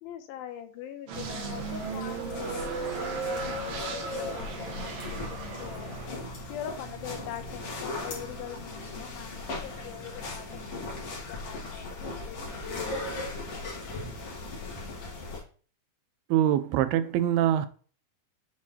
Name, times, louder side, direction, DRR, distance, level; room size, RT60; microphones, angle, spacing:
voice 1, 0.0-5.9 6.5-10.5 10.7-11.8 12.2-13.0, left 10 dB, 80° left, 2.4 m, -42 dB
sound 1, 1.1-15.4, left 2 dB, 50° left, 2.2 m, -38 dB
sound 2, 1.1-6.1, right 4 dB, 70° right, 2.6 m, -35 dB
voice 2, 16.3-17.7, right 11 dB, 90° right, 2.5 m, -24 dB
7.6 x 4.5 x 2.8 m
omnidirectional pair, 4.3 m